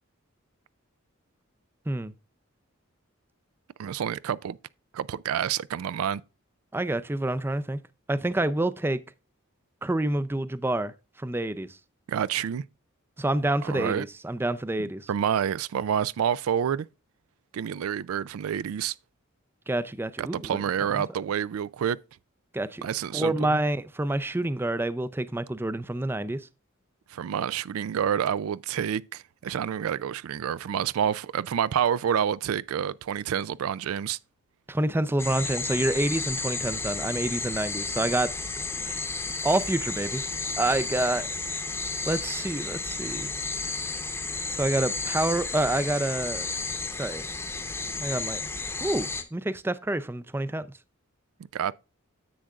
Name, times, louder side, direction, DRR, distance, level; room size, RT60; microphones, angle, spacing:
voice 1, 3.8-4.6 4.9-6.2 12.1-12.6 13.6-14.1 15.1-16.9 17.5-18.9 20.2-22.0 22.8-23.6 27.1-34.2 51.5-51.7, right 8 dB, 85° right, 0.3 m, -28 dB
voice 2, 6.7-7.8 8.1-9.0 9.8-10.9 11.2-11.8 13.2-15.1 19.7-21.1 22.5-22.9 23.1-26.5 34.7-38.3 38.8-39.0 39.4-40.2 40.6-41.3 42.1-43.3 44.5-46.5 46.9-47.3 48.0-48.4 48.8-50.7, right 1 dB, 10° right, 0.4 m, -28 dB
sound 1, 35.2-49.2, left 3 dB, 10° left, 0.8 m, -32 dB
10.0 x 7.6 x 2.4 m
head